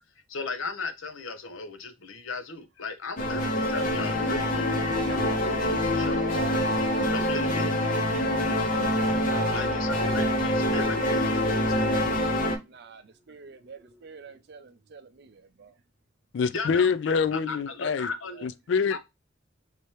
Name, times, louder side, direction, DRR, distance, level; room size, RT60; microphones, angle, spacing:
voice 1, 0.3-6.3 7.1-7.8 9.5-12.2 16.5-16.9 17.3-18.5 18.9-19.0, left 3 dB, 85° left, 0.8 m, -36 dB
sound 1, 3.2-12.6, left 1 dB, 45° left, 0.7 m, -25 dB
sound 2, 3.8-4.0 4.3-4.6 4.9-7.5 8.4-9.2 9.9-10.2 10.7-11.0 11.2-12.2 13.1-13.2 13.4-14.3, right 3 dB, 20° right, 0.8 m, -44 dB
voice 2, 9.2-10.1 12.6-15.7 18.4-18.5, right 5 dB, 55° right, 0.5 m, -45 dB
voice 3, 16.3-18.1 18.4-19.0, left 5 dB, 60° left, 0.3 m, -25 dB
3.3 x 2.8 x 3.1 m
head